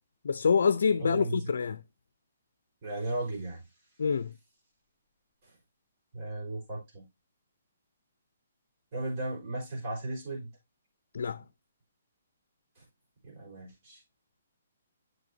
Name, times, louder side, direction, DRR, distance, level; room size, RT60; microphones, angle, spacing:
voice 1, 0.2-1.8 4.0-4.3 11.1-11.4, left 6 dB, 75° left, 0.4 m, -26 dB
voice 2, 1.0-1.5 2.8-3.6 6.1-7.0 8.9-10.5 11.3-11.4 13.2-14.0, right 2 dB, 40° right, 4.7 m, -35 dB
7.7 x 6.4 x 2.6 m
hypercardioid pair, 155°, 0 cm